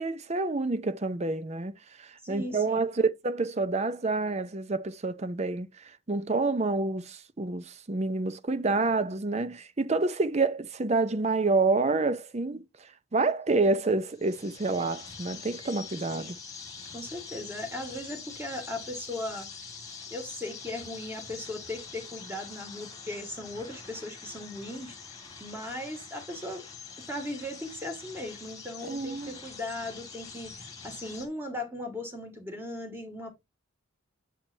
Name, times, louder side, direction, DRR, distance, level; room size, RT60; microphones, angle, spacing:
voice 1, 0.0-16.4 28.9-29.4, right 3 dB, 35° right, 0.6 m, -28 dB
voice 2, 2.2-2.8 16.2-16.3 16.9-19.5 20.1-24.9 25.4-26.7 27.0-33.3, left 1 dB, 10° right, 1.9 m, -38 dB
sound 1, 14.1-31.3, left 5 dB, 20° left, 1.6 m, -45 dB
7.3 x 7.2 x 2.6 m
head